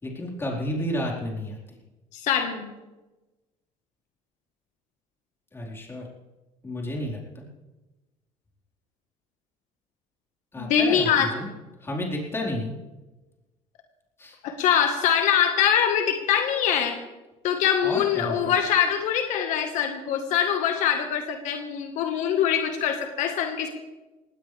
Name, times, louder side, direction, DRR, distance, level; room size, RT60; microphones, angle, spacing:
voice 1, 0.0-1.8 5.5-6.1 6.6-7.4 10.5-11.5 11.8-12.7 14.2-14.4 17.8-18.5, left 1 dB, 20° left, -2 dB, 4.7 m, -31 dB
voice 2, 2.1-2.7 10.6-11.3 14.4-17.0 17.4-23.7, left 8 dB, 75° left, 5 dB, 1.7 m, -23 dB
19.0 x 18.0 x 3.5 m, 1.1 s
cardioid pair, 120°, 13 cm